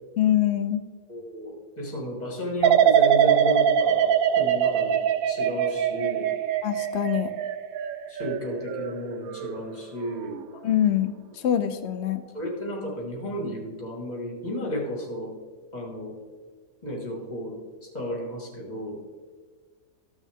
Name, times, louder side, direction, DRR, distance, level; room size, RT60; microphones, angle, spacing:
voice 1, 0.2-0.8 6.6-7.3 10.6-11.1 11.4-12.2, left 11 dB, 80° left, 9 dB, 0.6 m, -24 dB
voice 2, 1.1-5.0 5.3-6.3 8.1-10.3 12.3-15.3 15.7-16.2 16.8-19.0, equal, 25° left, 0 dB, 1.9 m, -33 dB
sound 1, 2.6-9.6 10.0-10.4, right 9 dB, 70° right, 1.0 m, -23 dB
14.5 x 6.3 x 3.6 m, 1.5 s
omnidirectional pair, 1.7 m